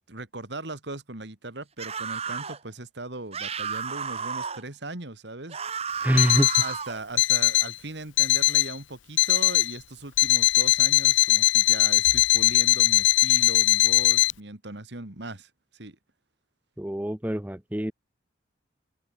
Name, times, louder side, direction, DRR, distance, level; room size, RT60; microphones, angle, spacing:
voice 1, 0.1-6.1 6.6-16.0, right 2 dB, 65° right, 2.3 m, -39 dB
sound 1, 1.8-2.6 3.3-4.6 5.5-7.0, right 6 dB, 30° right, 1.2 m, -32 dB
voice 2, 6.0-6.5 16.8-17.9, equal, 10° right, 0.7 m, -25 dB
Alarm, 6.2-6.7 7.2-7.7 8.2-8.7 9.2-9.7 10.2-14.3, left 17 dB, 80° left, 0.5 m, -20 dB
open air
head